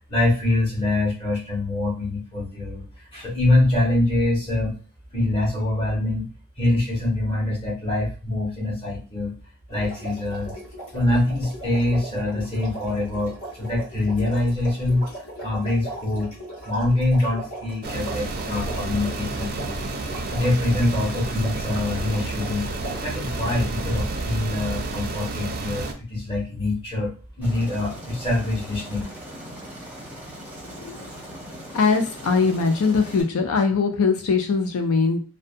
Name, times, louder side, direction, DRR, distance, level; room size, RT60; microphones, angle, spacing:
voice 1, 0.1-2.8 3.1-4.8 5.1-6.2 6.6-9.3 9.7-10.6 10.9-15.0 15.4-16.3 16.6-19.8 20.3-22.7 23.0-27.1 27.4-29.0, left 2 dB, 25° left, -4 dB, 1.2 m, -24 dB
sound 1, 9.7-23.7, right 1 dB, 65° left, 1.3 m, -39 dB
sound 2, 17.8-25.9, right 2 dB, 45° right, 0.4 m, -30 dB
Aircraft, 27.4-33.2, equal, 10° right, 0.7 m, -40 dB
voice 2, 31.7-35.2, left 4 dB, 85° left, 5 dB, 0.4 m, -21 dB
2.6 x 2.1 x 2.5 m, 0.34 s
head